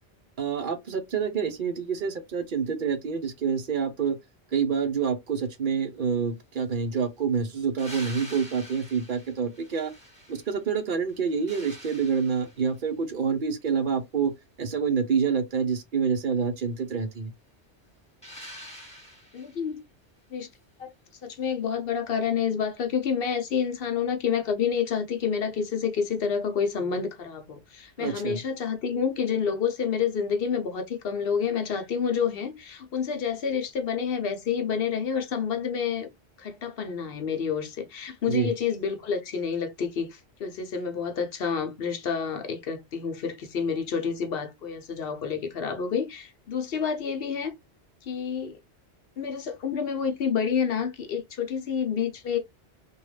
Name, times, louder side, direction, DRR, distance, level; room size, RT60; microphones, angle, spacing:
voice 1, 0.4-4.2 4.5-9.9 10.3-14.3 14.6-17.3 28.0-28.4 38.3-38.5, right 6 dB, 55° right, 0.8 m, -27 dB
sound 1, 7.8-10.7 11.1-12.8 18.2-19.7 22.2-22.3, equal, 5° left, 1.2 m, -46 dB
voice 2, 19.3-19.8 20.3-20.5 20.8-20.9 21.2-36.1 36.4-47.5 48.0-48.6 49.2-52.4, left 7 dB, 60° left, 0.8 m, -29 dB
2.9 x 2.3 x 3.2 m
omnidirectional pair, 1.1 m